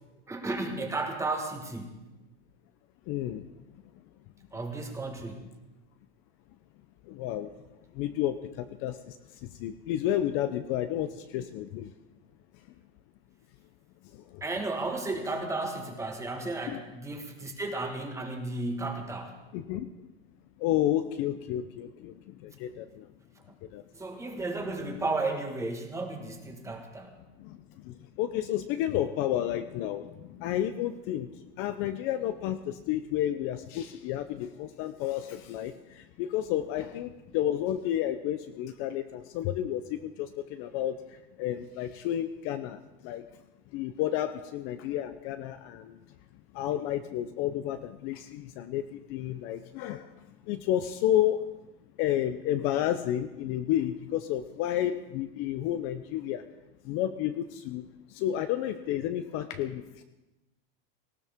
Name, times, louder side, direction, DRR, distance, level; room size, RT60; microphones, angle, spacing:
voice 1, 0.3-2.0 4.5-5.5 14.4-19.4 23.5-23.6 23.9-27.2, right 2 dB, 10° right, 4 dB, 1.5 m, -34 dB
voice 2, 3.1-3.5 7.1-7.5 7.9-9.2 9.4-11.9 14.1-14.4 16.7-16.8 19.5-19.9 20.6-23.1 23.7-23.8 27.4-31.3 31.6-43.2 43.7-46.0 46.5-50.1 50.4-51.5 52.0-56.4 56.8-57.8 58.1-60.0, left 12 dB, 45° left, 10 dB, 0.6 m, -31 dB
18.5 x 16.0 x 3.6 m, 1.0 s
supercardioid pair, 150°, 31 cm